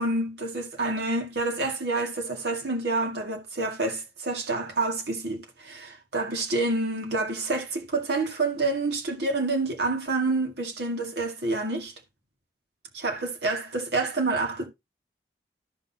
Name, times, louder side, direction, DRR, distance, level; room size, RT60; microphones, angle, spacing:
voice 1, 0.0-11.9 12.9-14.7, right 2 dB, 75° right, 2.1 m, -28 dB
13.5 x 6.0 x 2.8 m
head